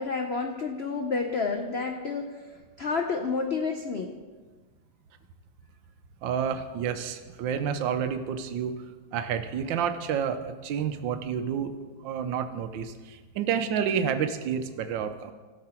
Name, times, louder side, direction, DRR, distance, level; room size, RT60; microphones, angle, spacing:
voice 1, 0.0-2.4 2.8-4.2, left 4 dB, 70° left, 3 dB, 0.6 m, -30 dB
voice 2, 6.2-8.8 9.1-11.7 12.0-15.3, right 7 dB, 80° right, 9 dB, 1.4 m, -29 dB
16.5 x 5.9 x 4.4 m, 1.4 s
omnidirectional pair, 2.0 m